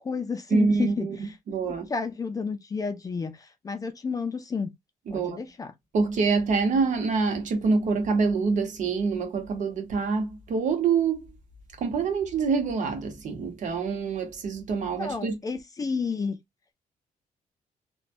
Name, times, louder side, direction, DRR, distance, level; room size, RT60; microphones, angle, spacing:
voice 1, 0.0-1.3 1.9-4.7 5.1-5.7 15.0-16.4, left 5 dB, 25° left, 0.4 m, -31 dB
voice 2, 0.5-1.9 5.1-5.4 5.9-11.3 11.8-15.3, right 4 dB, 60° right, 0.9 m, -26 dB
3.0 x 2.2 x 2.5 m
wide cardioid pair, 170°, 14 cm